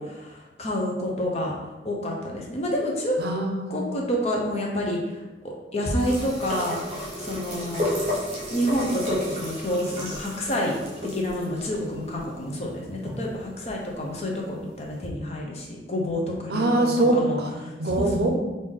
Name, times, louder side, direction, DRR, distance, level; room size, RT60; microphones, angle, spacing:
voice 1, 0.0-1.5 1.8-3.2 3.7-6.8 7.2-7.9 8.5-10.8 11.0-17.4 17.6-18.3, equal, 35° left, -1 dB, 0.6 m, -28 dB
voice 2, 3.2-3.9 16.5-17.5 17.8-18.3, right 2 dB, 65° right, 2 dB, 0.5 m, -23 dB
sound 1, 6.0-13.3 14.1-14.2, left 1 dB, 35° right, 0.9 m, -33 dB
3.3 x 2.6 x 3.6 m, 1.1 s
head